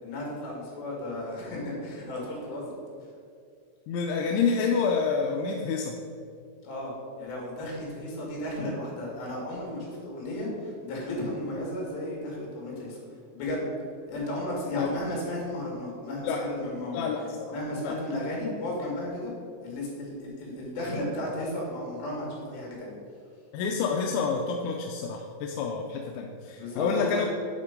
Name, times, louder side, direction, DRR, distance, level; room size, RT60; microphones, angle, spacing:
voice 1, 0.0-2.7 6.6-13.0 13.3-13.7 14.1-17.1 17.5-19.3 19.6-22.9 26.6-27.1, left 1 dB, 70° left, -3 dB, 4.1 m, -34 dB
voice 2, 3.9-6.0 14.8-14.9 16.2-16.5 16.9-17.5 17.8-18.0 23.5-27.3, left 5 dB, 90° left, 1 dB, 3.0 m, -28 dB
9.8 x 4.5 x 5.1 m, 2.3 s
omnidirectional pair, 5.3 m